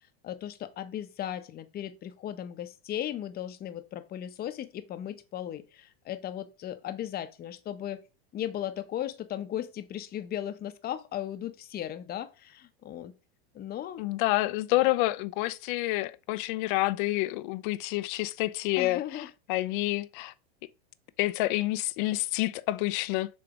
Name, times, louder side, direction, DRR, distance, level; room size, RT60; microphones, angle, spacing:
voice 1, 0.2-8.0 8.3-13.1 13.5-14.0 18.8-19.3, left 11 dB, 30° left, 0.9 m, -36 dB
voice 2, 14.0-20.3 21.2-23.3, left 18 dB, 55° left, 0.7 m, -28 dB
7.0 x 3.3 x 5.2 m
hypercardioid pair, 110°, 31 cm